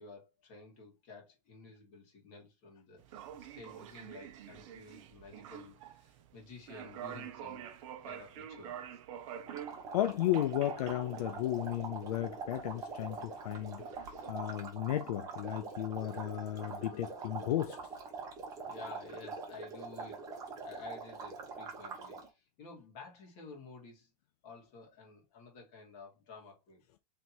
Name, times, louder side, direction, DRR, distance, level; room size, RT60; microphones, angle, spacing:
voice 1, 0.0-7.7 8.0-9.0 18.6-24.1 24.4-26.8, left 4 dB, 35° left, 1.8 m, -52 dB
sound 1, 3.0-14.3, right 10 dB, 55° right, 0.5 m, -48 dB
sound 2, 9.5-22.3, right 4 dB, 15° right, 0.7 m, -44 dB
voice 2, 9.9-17.9, left 13 dB, 75° left, 0.4 m, -34 dB
3.3 x 2.8 x 4.2 m
supercardioid pair, 165°, 20 cm